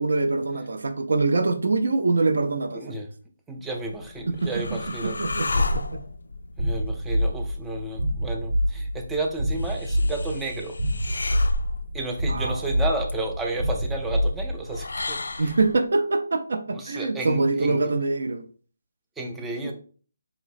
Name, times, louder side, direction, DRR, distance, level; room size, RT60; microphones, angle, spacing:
voice 1, 0.0-2.8 4.3-4.5 5.0-6.0 12.3-12.7 15.4-18.4 19.5-19.7, right 3 dB, 65° right, 8 dB, 0.4 m, -24 dB
voice 2, 2.7-3.1 3.5-5.2 6.6-10.8 11.9-15.5 16.7-17.9 19.2-19.7, right 2 dB, 5° right, 2 dB, 0.3 m, -32 dB
sound 1, 3.7-15.8, left 2 dB, 80° left, 0.3 m, -33 dB
sound 2, 6.6-14.8, equal, 80° right, 1.1 m, -27 dB
4.0 x 2.9 x 2.4 m, 0.41 s
hypercardioid pair, 175°, 0 cm